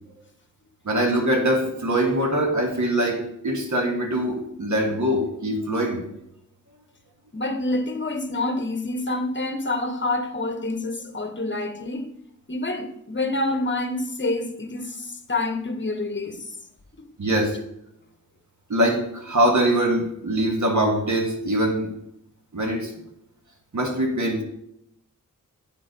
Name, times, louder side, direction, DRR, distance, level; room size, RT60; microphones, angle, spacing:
voice 1, 0.8-6.1 17.2-17.6 18.7-21.9 22.5-22.9 23.7-24.4, right 1 dB, 60° right, 1.5 m, -23 dB
voice 2, 7.3-12.1 12.5-16.5 17.0-17.1, left 2 dB, 35° left, 1.0 m, -27 dB
8.8 x 4.1 x 5.1 m
wide cardioid pair, 60°, 33 cm